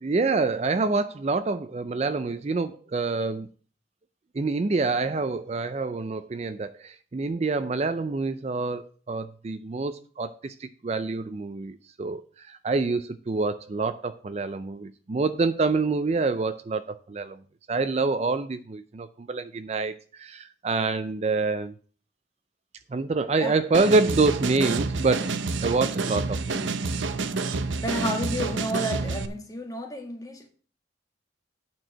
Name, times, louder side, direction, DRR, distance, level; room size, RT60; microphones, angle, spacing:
voice 1, 0.0-3.5 4.3-17.4 17.7-21.8 22.9-26.7, right 3 dB, 35° right, 0.4 m, -27 dB
sound 1, 23.7-29.3, right 3 dB, 80° right, 0.7 m, -28 dB
voice 2, 27.8-30.5, equal, 20° left, 1.4 m, -31 dB
9.0 x 4.5 x 7.3 m
head